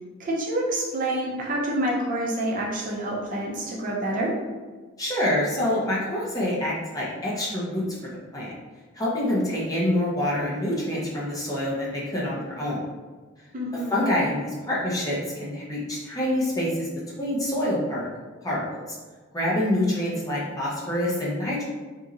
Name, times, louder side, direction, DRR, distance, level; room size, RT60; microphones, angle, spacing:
voice 1, 0.2-4.3 13.5-14.1, right 1 dB, 40° right, -3 dB, 0.5 m, -27 dB
voice 2, 5.0-7.8 8.3-8.5 9.0-12.8 13.9-16.9 17.2-18.0 18.4-18.6 19.3-21.6, left 1 dB, 15° left, -6 dB, 0.6 m, -26 dB
2.9 x 2.6 x 2.5 m, 1.4 s
head